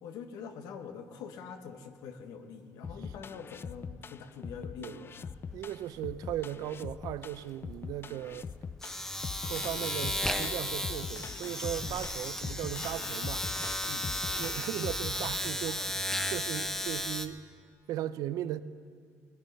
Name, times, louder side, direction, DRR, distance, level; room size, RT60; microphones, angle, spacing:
voice 1, 0.0-5.4 13.9-14.1, left 6 dB, 85° left, 1.4 m, -45 dB
sound 1, 2.8-16.0, left 6 dB, 40° left, 0.4 m, -42 dB
Domestic sounds home sounds, 5.5-5.7 6.0-17.3, left 1 dB, 10° left, 1.1 m, -35 dB
voice 2, 5.5-8.5 9.4-13.5 14.3-15.9 16.3-17.4 17.9-18.6, right 12 dB, 80° right, 0.6 m, -37 dB
21.0 x 10.5 x 5.4 m
cardioid pair, 90°, 6 cm